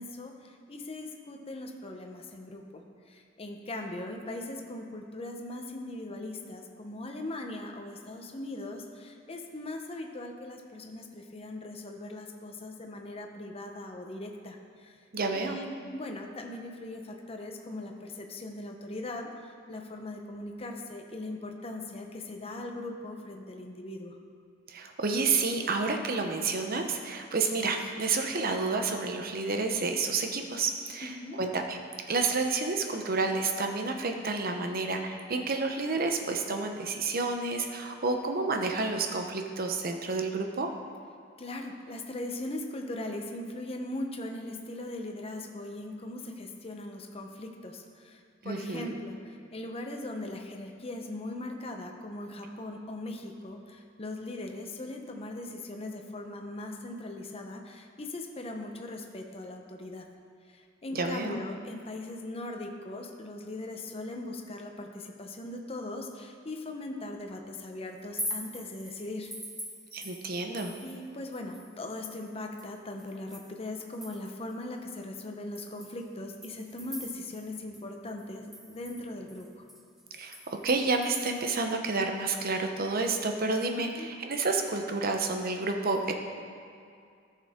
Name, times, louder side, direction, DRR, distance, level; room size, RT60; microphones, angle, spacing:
voice 1, 0.0-2.8 3.1-15.0 15.3-19.3 19.7-24.2 31.0-31.4 41.4-60.0 60.5-69.3 70.8-79.6 83.8-84.1, left 2 dB, 30° left, 3 dB, 0.8 m, -40 dB
voice 2, 15.1-15.6 24.7-31.8 32.1-40.7 48.4-48.9 60.9-61.4 69.9-70.7 80.1-86.1, right 3 dB, 50° right, 4 dB, 0.8 m, -30 dB
sound 1, 68.0-71.1 71.3-74.5 75.0-75.1 75.5-77.5 77.7-77.8 78.2-81.6, equal, ahead, 0.6 m, -43 dB
13.5 x 6.5 x 3.6 m, 2.3 s
head